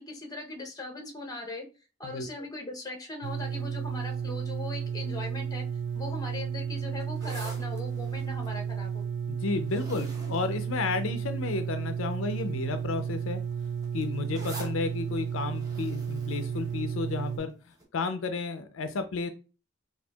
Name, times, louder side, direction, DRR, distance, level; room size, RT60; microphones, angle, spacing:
voice 1, 0.0-1.7 2.0-5.6 5.9-9.0, left 2 dB, 20° left, 2 dB, 0.7 m, -39 dB
sound 1, 3.2-17.4, right 7 dB, 60° right, 0.4 m, -33 dB
sound 2, 7.0-11.5 12.2-12.5 12.8-17.4 17.8-17.9, right 2 dB, 20° right, 0.8 m, -47 dB
voice 2, 9.3-13.4 13.9-19.3, left 4 dB, 70° left, 9 dB, 0.4 m, -32 dB
4.2 x 2.4 x 2.2 m, 0.33 s
head